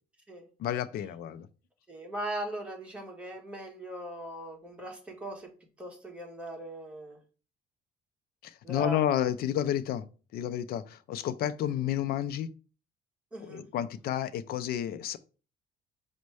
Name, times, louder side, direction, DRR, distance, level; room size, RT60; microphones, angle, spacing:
voice 1, 0.6-1.5 8.4-10.0 10.3-12.5 13.4-15.2, left 10 dB, 65° left, 0.4 m, -31 dB
voice 2, 1.9-5.5 5.8-7.2 8.6-9.0 13.3-13.6, right 1 dB, 5° right, 1.3 m, -39 dB
5.2 x 2.2 x 4.7 m
cardioid pair, 110°, 17 cm